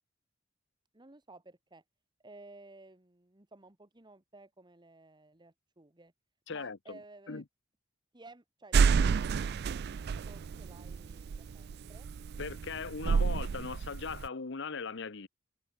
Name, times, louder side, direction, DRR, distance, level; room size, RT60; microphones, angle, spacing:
voice 1, 0.9-1.8 2.2-6.1 6.5-7.4 8.1-8.8 10.3-12.1, right 2 dB, 20° right, 1.4 m, -55 dB
voice 2, 6.5-7.0 7.3-7.4 12.4-15.3, left 4 dB, 60° left, 0.9 m, -39 dB
sound 1, 8.7-14.3, right 5 dB, 55° right, 0.4 m, -29 dB
head